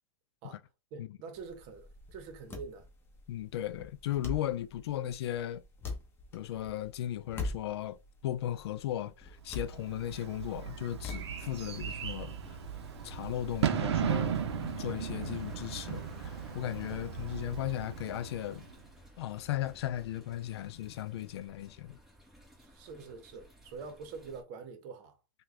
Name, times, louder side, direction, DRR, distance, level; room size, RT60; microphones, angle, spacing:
voice 1, 0.9-2.9 22.6-25.2, right 5 dB, 45° right, 0.9 m, -45 dB
sound 1, 1.3-11.9, left 3 dB, 15° left, 0.9 m, -44 dB
voice 2, 3.3-5.6 6.3-8.0 8.2-12.4 13.0-18.7 19.2-22.0, left 12 dB, 75° left, 0.4 m, -36 dB
Bird / Fireworks, 9.6-18.8, right 8 dB, 85° right, 0.6 m, -36 dB
sound 2, 11.4-24.4, left 1 dB, ahead, 1.2 m, -53 dB
3.4 x 2.3 x 3.1 m
hypercardioid pair, 130°, 14 cm